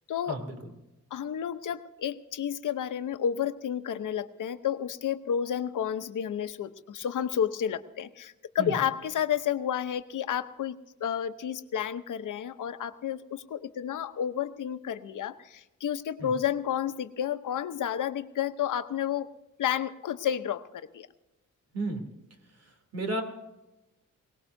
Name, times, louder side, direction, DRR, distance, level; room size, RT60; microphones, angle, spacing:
voice 1, 1.1-10.7 11.0-19.3 19.6-21.1, left 9 dB, 85° left, 10 dB, 0.9 m, -31 dB
voice 2, 21.7-22.1 22.9-23.2, right 2 dB, 55° right, 4 dB, 3.0 m, -32 dB
22.5 x 18.5 x 2.7 m, 0.97 s
wide cardioid pair, 120°, 30 cm